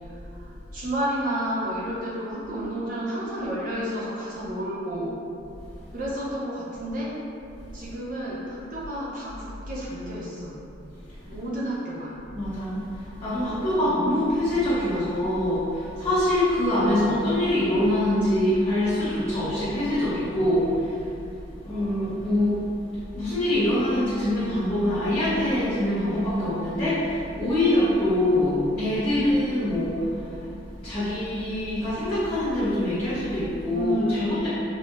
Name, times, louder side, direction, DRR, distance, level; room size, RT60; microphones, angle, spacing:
voice 1, 0.0-5.2 5.9-7.2 7.7-10.6 11.3-12.1 13.4-13.8 33.7-34.3, right 1 dB, 45° right, -7 dB, 0.7 m, -31 dB
voice 2, 12.3-21.0 21.6-22.6 23.1-30.5 30.8-34.5, left 1 dB, 30° left, -17 dB, 1.0 m, -24 dB
4.2 x 2.5 x 2.2 m, 2.7 s
head